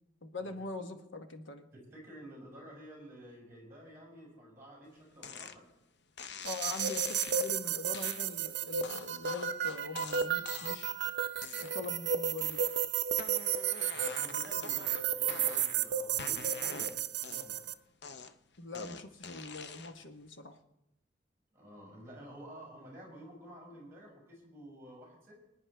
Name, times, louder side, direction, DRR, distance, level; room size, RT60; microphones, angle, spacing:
voice 1, 0.2-1.7 6.4-10.9 11.6-12.6 18.6-20.6, left 2 dB, 80° left, 6 dB, 1.1 m, -43 dB
voice 2, 1.7-5.7 13.9-17.6 21.5-25.4, equal, 15° right, -1 dB, 6.1 m, -51 dB
sound 1, 5.2-5.6 6.2-7.5 7.9-8.2 8.8-10.9 11.4-12.0 12.4-12.8 13.1-15.8 16.2-17.6 18.0-20.0, left 5 dB, 60° left, 0.6 m, -45 dB
sound 2, 6.4-17.7, right 8 dB, 60° right, 0.5 m, -33 dB
25.0 x 9.9 x 3.4 m, 0.84 s
head